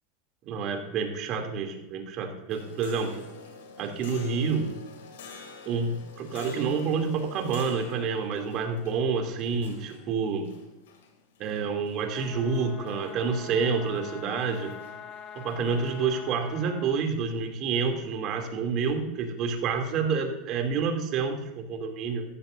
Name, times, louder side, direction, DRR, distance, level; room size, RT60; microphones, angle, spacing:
voice 1, 0.4-3.2 3.8-4.7 5.6-10.5 11.4-14.7 15.4-22.3, right 5 dB, 50° right, 3 dB, 2.8 m, -28 dB
sound 1, 2.5-16.0, left 3 dB, 90° left, 2.6 m, -47 dB
sound 2, 12.1-17.0, left 8 dB, 35° left, 1.2 m, -44 dB
14.5 x 13.5 x 2.7 m, 0.95 s
supercardioid pair, 115°, 0 cm